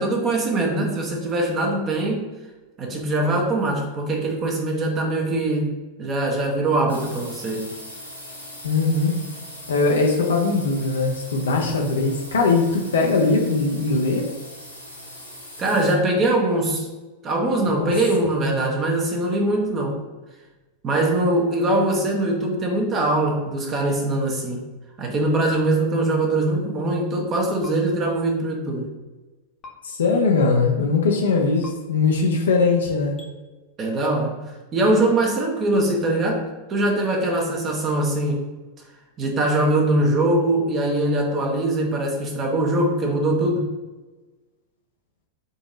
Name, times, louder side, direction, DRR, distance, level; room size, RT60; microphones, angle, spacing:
voice 1, 0.0-2.3 2.8-5.7 6.0-7.7 15.6-16.9 17.2-20.0 20.8-24.7 25.0-28.9 33.8-34.4 34.7-38.4 39.2-43.7, right 1 dB, 30° right, 0 dB, 1.0 m, -22 dB
sound 1, 6.9-15.9, equal, 90° right, 1.0 m, -40 dB
voice 2, 8.6-9.2 9.7-14.3 17.7-17.9 18.5-18.8 29.8-33.1, left 3 dB, 65° left, 0 dB, 0.6 m, -21 dB
sound 2, 27.6-27.8 29.6-29.7 31.6-31.7 33.2-33.3, left 3 dB, 30° left, 0.9 m, -41 dB
3.9 x 2.9 x 3.8 m, 1.2 s
figure-of-eight pair, 90°, 0 cm